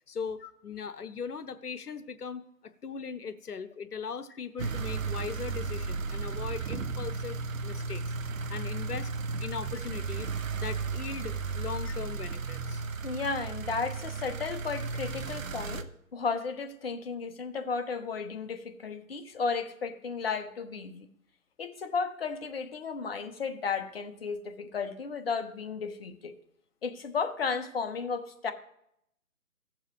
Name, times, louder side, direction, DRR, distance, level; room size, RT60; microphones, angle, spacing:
voice 1, 0.1-8.0 8.5-9.1 9.4-12.8, left 6 dB, 85° left, 12 dB, 0.9 m, -39 dB
sound 1, 4.6-15.8, right 4 dB, 65° right, 0.9 m, -34 dB
voice 2, 13.0-21.1 21.6-26.3 26.8-28.5, left 5 dB, 40° left, 7 dB, 0.9 m, -34 dB
16.0 x 7.3 x 3.1 m, 0.75 s
figure-of-eight pair, 155°, 45 cm